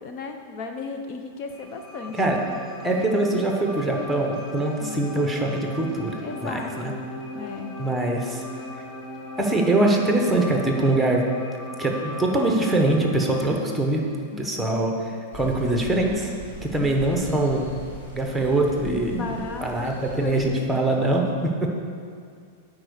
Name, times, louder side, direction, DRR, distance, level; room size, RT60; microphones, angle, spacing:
voice 1, 0.0-2.2 4.8-5.0 6.2-7.0 7.3-7.7 14.3-14.8 19.1-19.9 20.2-20.8, left 4 dB, 45° left, 4 dB, 0.7 m, -35 dB
sound 1, 1.5-13.5, left 1 dB, 25° left, 1.4 m, -38 dB
voice 2, 2.8-6.9 7.8-8.4 8.7-8.8 9.4-11.3 11.8-14.0 14.4-16.3 16.6-17.8 18.1-19.2 19.6-21.7, right 2 dB, 5° right, 1 dB, 1.2 m, -23 dB
sound 2, 15.3-20.5, left 1 dB, 70° left, 2.6 m, -41 dB
9.9 x 4.7 x 6.5 m, 2.2 s
hypercardioid pair, 135°, 0 cm